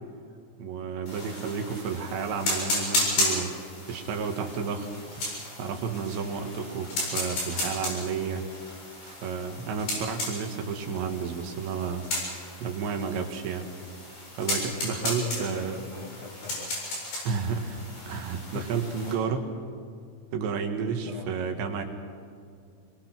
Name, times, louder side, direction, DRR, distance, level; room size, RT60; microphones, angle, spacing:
voice 1, 0.6-3.6 3.8-4.9 5.6-8.4 9.0-12.1 12.6-13.7 14.3-15.8 17.2-19.5 20.3-21.8, right 6 dB, 70° right, 4 dB, 3.9 m, -31 dB
sound 1, 1.1-19.1, left 1 dB, 55° left, 9.6 m, -34 dB
voice 2, 15.0-16.8 18.5-18.7 21.0-21.3, left 3 dB, 75° left, 2 dB, 1.4 m, -39 dB
27.0 x 21.5 x 6.1 m, 2.3 s
omnidirectional pair, 5.6 m